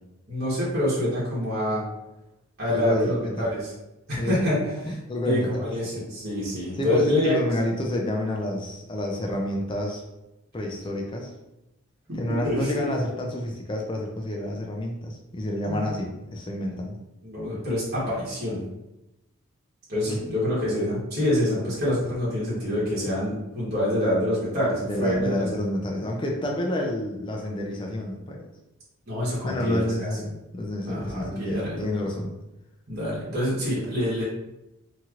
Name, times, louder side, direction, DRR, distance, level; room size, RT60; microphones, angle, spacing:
voice 1, 0.3-1.8 2.6-3.7 4.1-4.6 5.2-7.3 12.1-12.9 15.6-15.9 17.2-18.6 19.9-25.4 29.1-30.1 30.8-31.8 32.9-34.2, left 1 dB, 45° right, -8 dB, 1.1 m, -26 dB
voice 2, 2.7-3.5 4.1-4.4 4.9-5.7 6.7-10.0 10.5-11.3 12.1-17.0 20.1-20.2 24.8-28.4 29.4-32.3, left 1 dB, 20° left, 0 dB, 0.4 m, -29 dB
3.0 x 2.8 x 2.4 m, 0.94 s
head